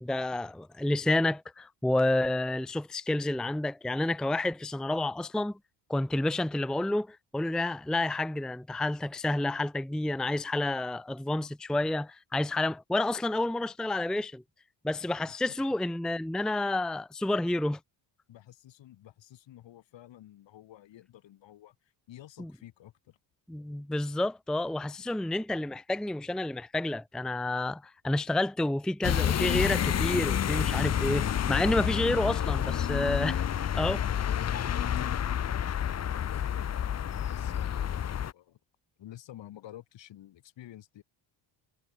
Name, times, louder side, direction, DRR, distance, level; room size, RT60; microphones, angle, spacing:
voice 1, 0.0-5.6 5.9-14.4 14.8-17.8 22.4-22.5 23.5-34.0, left 2 dB, ahead, 0.6 m, -30 dB
voice 2, 18.3-23.2 34.4-38.6 39.0-41.0, left 13 dB, 70° left, 7.2 m, -51 dB
sound 1, 29.0-38.3, left 9 dB, 35° left, 0.9 m, -29 dB
cardioid pair, 135°, 46 cm